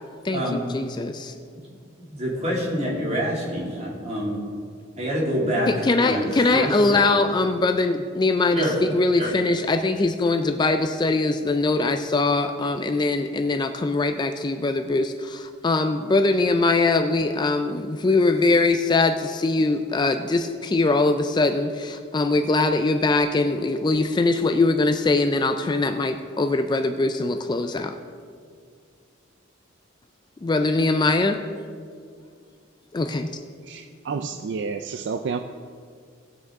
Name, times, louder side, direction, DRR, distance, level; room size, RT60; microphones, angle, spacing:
voice 1, 0.2-1.3 5.7-27.9 30.4-31.4 32.9-33.3, left 3 dB, 20° left, 7 dB, 0.3 m, -22 dB
voice 2, 2.0-4.4 5.0-5.7 6.0-7.0 8.5-8.7 9.2-9.3, equal, 35° right, -4 dB, 2.5 m, -26 dB
voice 3, 33.6-35.4, right 5 dB, 60° right, 7 dB, 0.4 m, -30 dB
18.0 x 6.5 x 3.6 m, 2.2 s
head